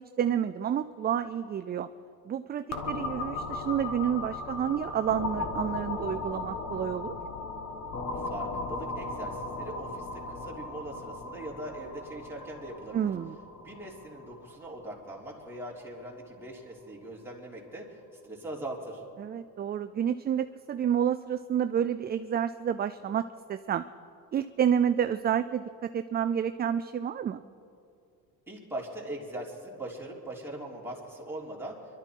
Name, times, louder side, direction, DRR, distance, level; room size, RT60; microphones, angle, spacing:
voice 1, 0.0-1.9 2.3-7.1 12.9-13.4 19.2-23.2 23.5-23.8 24.3-27.4, right 9 dB, 25° right, 10 dB, 0.3 m, -29 dB
sound 1, 2.7-16.3, left 3 dB, 40° left, 1.6 m, -37 dB
voice 2, 8.2-13.1 13.6-18.0 18.2-19.0 28.5-31.8, right 1 dB, 5° right, -4 dB, 3.3 m, -41 dB
24.5 x 12.0 x 4.6 m, 2.5 s
cardioid pair, 110°, 39 cm